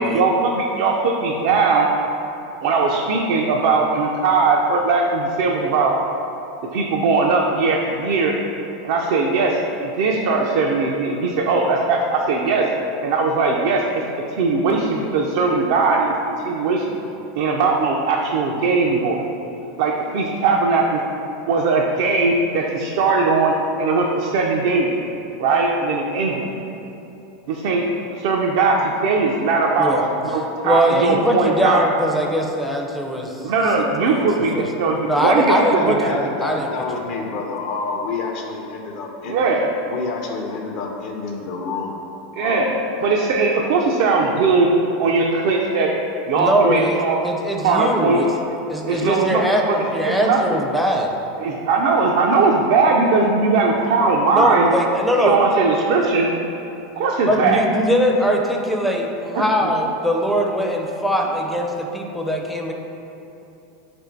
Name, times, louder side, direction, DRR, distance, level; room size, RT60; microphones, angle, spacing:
voice 1, 0.0-1.9 2.6-5.9 6.7-8.3 8.8-12.7 13.0-13.8 14.3-16.1 16.4-17.0 17.4-19.2 19.8-21.0 21.5-23.5 23.8-24.9 25.4-26.5 27.5-27.8 28.2-31.8 33.4-36.2 39.3-39.7 42.3-42.8 43.0-44.7 45.0-45.9 46.3-47.2 47.6-48.2 48.8-50.4 51.4-54.7 55.2-56.3 57.0-57.6 59.3-59.4, right 4 dB, 65° right, -1 dB, 0.3 m, -19 dB
voice 2, 30.6-33.5 33.8-34.3 34.5-34.7 35.0-36.1 36.4-36.7 46.4-51.1 54.3-55.4 57.3-62.7, equal, ahead, 1 dB, 0.4 m, -21 dB
voice 3, 35.8-39.4 39.9-42.0 42.4-42.7, left 4 dB, 55° left, 1 dB, 0.5 m, -28 dB
3.1 x 2.5 x 4.3 m, 2.9 s
hypercardioid pair, 100°, 0 cm